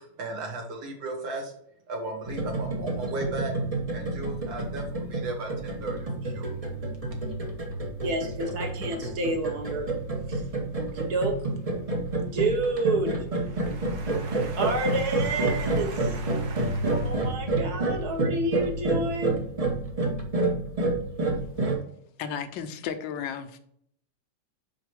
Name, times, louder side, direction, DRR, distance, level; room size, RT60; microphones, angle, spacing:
voice 1, 0.2-1.5 1.9-3.5 3.9-6.5, right 2 dB, 80° right, 2.1 m, -35 dB
sound 1, 2.2-21.7, right 2 dB, 35° right, 0.6 m, -29 dB
voice 2, 8.0-9.9 10.3-10.4 10.8-11.5 12.3-19.4, right 2 dB, 60° right, 1.4 m, -30 dB
voice 3, 22.2-23.6, left 7 dB, 75° left, 1.3 m, -34 dB
4.9 x 4.3 x 4.6 m
omnidirectional pair, 2.1 m